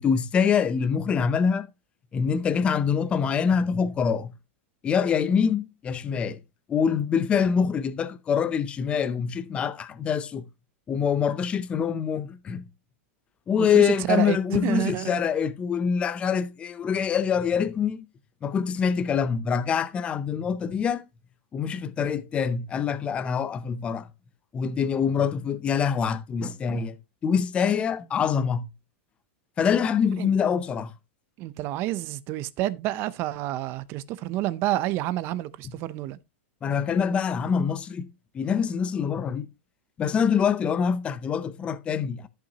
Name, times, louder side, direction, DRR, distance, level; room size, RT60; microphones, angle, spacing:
voice 1, 0.0-1.7 2.1-4.3 4.8-6.4 6.7-10.4 10.9-12.6 13.5-18.0 18.4-21.0 21.5-24.1 24.5-27.0 27.2-28.7 29.6-30.9 36.6-38.1 38.3-39.5 40.0-42.3, left 7 dB, 15° left, 0.5 m, -25 dB
voice 2, 13.6-15.2 30.2-30.3 31.4-36.2, right 15 dB, 35° right, 0.5 m, -29 dB
14.0 x 5.8 x 2.8 m
supercardioid pair, 155°, 7 cm